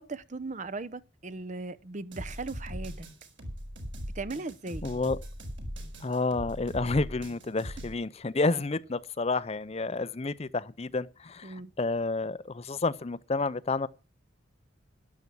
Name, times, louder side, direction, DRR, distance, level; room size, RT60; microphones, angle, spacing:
voice 1, 0.0-3.1 4.1-4.9 8.5-8.6 11.4-11.7, right 3 dB, 40° right, 0.8 m, -38 dB
sound 1, 2.1-7.9, equal, 70° right, 6.9 m, -40 dB
voice 2, 4.8-5.2 6.0-13.9, left 3 dB, 30° left, 0.6 m, -30 dB
12.5 x 11.0 x 6.1 m
head